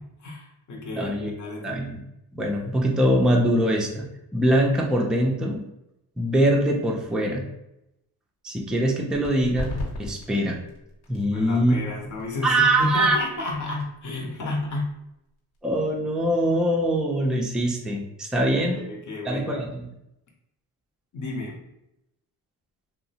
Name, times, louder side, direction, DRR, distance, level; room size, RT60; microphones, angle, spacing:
voice 1, 0.0-1.8 11.3-14.9 18.4-19.6 21.1-21.6, left 2 dB, 45° left, 0 dB, 0.8 m, -32 dB
voice 2, 0.9-1.3 1.6-2.0 2.3-4.1 4.3-5.6 6.2-7.4 8.4-9.7 10.0-10.6 11.1-11.8 12.4-13.2 15.6-18.8 19.2-19.8, right 1 dB, ahead, 0 dB, 0.4 m, -23 dB
sound 1, 9.1-16.4, left 1 dB, 75° left, 1.1 m, -40 dB
2.6 x 2.0 x 2.7 m, 0.86 s
cardioid pair, 70°, 41 cm